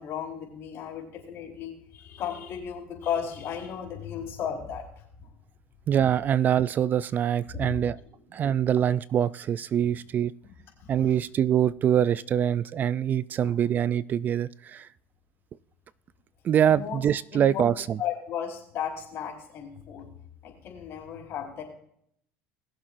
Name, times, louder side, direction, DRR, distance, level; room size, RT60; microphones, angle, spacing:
voice 1, 0.0-5.3 7.5-7.8 8.1-8.2 10.8-11.1 13.4-13.5 16.7-17.0 17.3-17.6 18.0-20.1 20.4-21.6, left 8 dB, 50° left, 4.2 m, -35 dB
voice 2, 5.9-8.0 8.3-10.3 10.9-14.9 16.4-18.0, right 9 dB, 35° right, 0.3 m, -24 dB
21.0 x 7.4 x 2.6 m
supercardioid pair, 125°, 5 cm